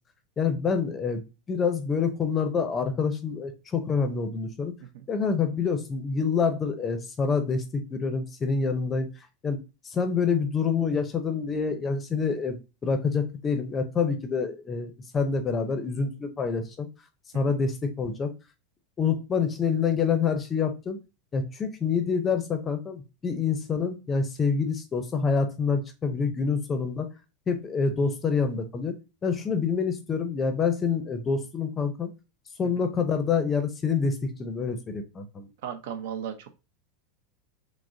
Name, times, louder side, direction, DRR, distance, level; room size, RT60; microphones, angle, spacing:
voice 1, 0.4-4.7 5.1-9.1 9.4-9.6 9.8-16.9 17.3-18.3 19.0-21.0 21.3-27.1 27.5-29.0 29.2-32.1 32.6-35.5, left 5 dB, 20° left, 8 dB, 0.6 m, -27 dB
voice 2, 35.6-36.6, right 8 dB, 70° right, 8 dB, 0.7 m, -36 dB
6.1 x 2.1 x 2.6 m, 0.28 s
supercardioid pair, 155°, 0 cm